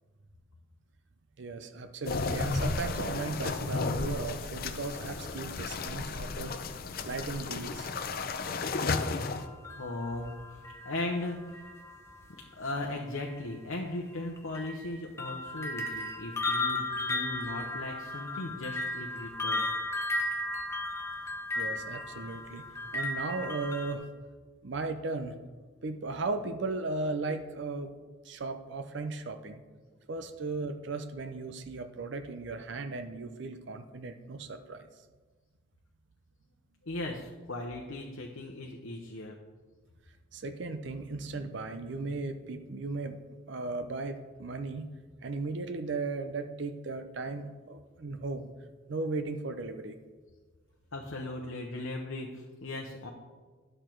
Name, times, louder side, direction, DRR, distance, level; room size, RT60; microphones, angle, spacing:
voice 1, 1.4-6.6 7.0-7.9 21.6-22.6 22.9-24.0 24.6-25.4 25.8-27.9 28.2-29.6 30.1-34.9 40.3-43.2 43.5-44.9 45.2-48.5 48.9-50.0, right 3 dB, 55° right, 8 dB, 0.5 m, -36 dB
sound 1, 2.1-9.5, left 3 dB, 45° left, 0.5 m, -33 dB
sound 2, 9.0-12.2 13.2-13.3 14.1-23.9, left 2 dB, 15° left, 0.8 m, -35 dB
voice 2, 9.8-11.4 12.6-19.7 36.9-39.4 50.9-53.1, left 2 dB, 70° left, 1 dB, 0.8 m, -37 dB
10.5 x 6.6 x 4.5 m, 1.4 s
head